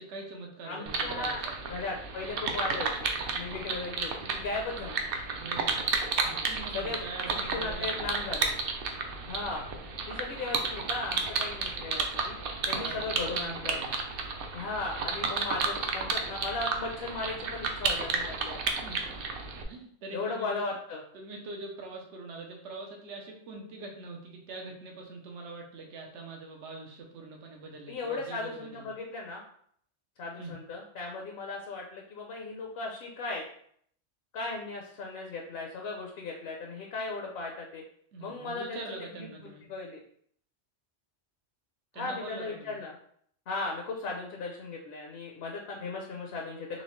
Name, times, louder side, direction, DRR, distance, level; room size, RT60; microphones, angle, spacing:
voice 1, 0.0-1.5 5.3-5.8 6.2-8.3 12.7-13.0 13.3-13.9 18.7-19.2 19.7-20.6 21.1-28.9 30.4-30.6 38.1-39.6 41.9-42.8, right 3 dB, 75° right, 1 dB, 1.1 m, -43 dB
voice 2, 0.6-1.4 1.7-5.0 6.7-7.0 7.5-8.5 9.3-9.7 10.1-12.4 12.7-13.8 14.5-18.6 20.1-21.0 27.9-29.4 30.2-33.4 34.3-37.8 38.2-38.8 39.2-39.3 39.7-40.0 41.9-42.9 43.5-46.8, left 3 dB, 65° left, 0 dB, 0.9 m, -36 dB
sound 1, 0.9-19.6, right 4 dB, 60° right, 0.7 m, -32 dB
4.2 x 3.1 x 3.1 m, 0.65 s
omnidirectional pair, 1.2 m